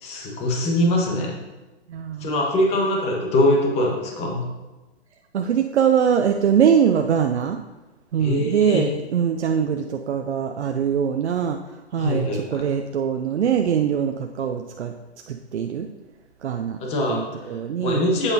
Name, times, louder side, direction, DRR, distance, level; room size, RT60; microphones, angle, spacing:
voice 1, 0.0-1.3 2.2-4.4 8.2-8.8 12.0-12.6 16.8-17.2 17.8-18.3, left 1 dB, 20° left, 0 dB, 1.3 m, -22 dB
voice 2, 1.9-2.3 5.3-7.6 8.1-11.6 11.9-14.9 15.3-15.9 16.4-16.8 17.1-18.0, right 8 dB, 75° right, 5 dB, 0.6 m, -22 dB
8.8 x 8.1 x 2.8 m, 1.1 s
hypercardioid pair, 135°, 34 cm